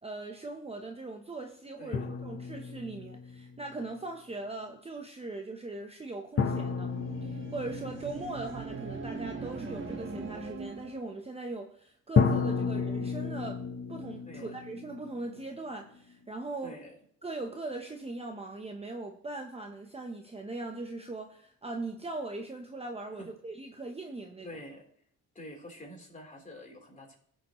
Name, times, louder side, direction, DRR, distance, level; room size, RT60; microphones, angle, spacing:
voice 1, 0.0-6.9 7.2-13.6 13.9-16.8 17.2-24.5, right 2 dB, 20° right, 3 dB, 0.9 m, -40 dB
voice 2, 1.8-2.1 14.3-14.6 16.6-17.0 23.2-23.3 24.4-24.8 25.3-27.1, left 1 dB, 25° left, -1 dB, 3.7 m, -47 dB
sound 1, 1.9-3.7 6.4-9.2 12.2-16.0, left 5 dB, 40° left, 1.0 m, -32 dB
sound 2, 6.5-11.1, right 4 dB, 35° right, 1.6 m, -41 dB
16.0 x 6.5 x 3.1 m, 0.62 s
cardioid pair, 90°, 33 cm